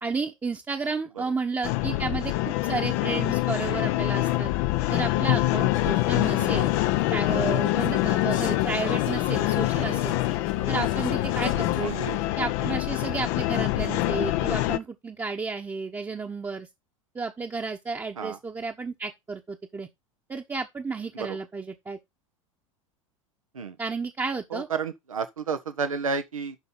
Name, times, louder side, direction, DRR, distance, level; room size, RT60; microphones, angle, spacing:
voice 1, 0.0-4.5 4.9-6.7 7.1-10.1 10.7-11.9 12.4-16.7 17.1-19.9 20.3-22.0 23.8-24.7, right 4 dB, 15° right, 1.1 m, -32 dB
sound 1, 1.6-14.8, left 17 dB, 50° left, 0.8 m, -25 dB
sound 2, 5.7-12.3, left 4 dB, 80° left, 3.8 m, -38 dB
voice 2, 24.5-26.6, right 5 dB, 80° right, 1.1 m, -31 dB
11.5 x 4.0 x 3.9 m
figure-of-eight pair, 80°, 17 cm